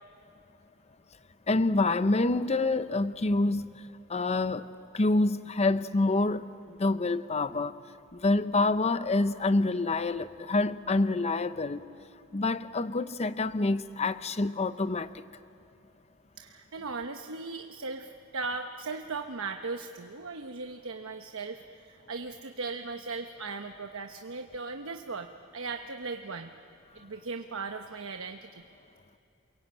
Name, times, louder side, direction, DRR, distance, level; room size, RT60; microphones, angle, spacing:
voice 1, 1.5-3.7 4.1-4.7 4.9-6.5 6.8-7.8 8.1-11.8 12.3-15.2, left 2 dB, 30° left, 0.7 m, -27 dB
voice 2, 16.4-26.5 26.9-28.6, right 4 dB, 90° right, 1.0 m, -38 dB
28.0 x 23.0 x 8.8 m
head